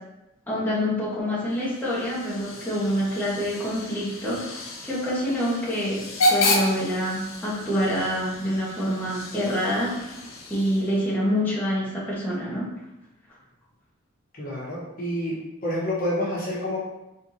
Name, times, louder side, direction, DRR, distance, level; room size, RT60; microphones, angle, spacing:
voice 1, 0.5-9.9 10.5-12.7, equal, 10° left, -9 dB, 1.2 m, -26 dB
Hiss / Train / Alarm, 1.5-11.1, left 1 dB, 75° left, 0.8 m, -31 dB
voice 2, 14.3-15.4 15.6-16.8, left 1 dB, 45° left, -6 dB, 1.2 m, -28 dB
4.4 x 3.6 x 2.7 m, 0.95 s
head